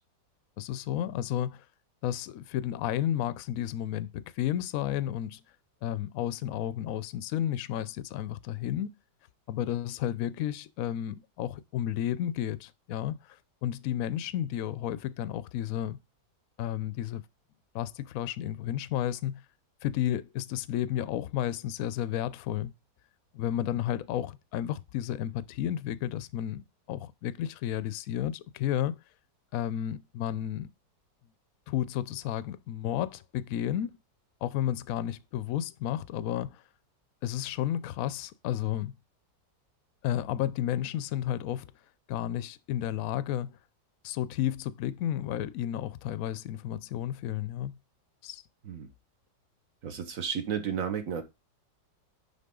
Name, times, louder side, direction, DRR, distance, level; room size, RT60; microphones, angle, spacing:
voice 1, 0.6-1.6 2.0-5.4 5.8-9.0 9.5-16.0 16.6-17.2 17.7-19.4 19.8-22.7 23.3-29.0 29.5-30.7 31.7-34.0 34.4-36.6 37.2-38.9 40.0-41.7 42.1-43.6 44.0-47.8 48.2-48.4, left 11 dB, 65° left, 0.9 m, -32 dB
voice 2, 49.8-51.2, right 7 dB, 50° right, 1.6 m, -32 dB
10.5 x 4.1 x 3.7 m
omnidirectional pair, 1.9 m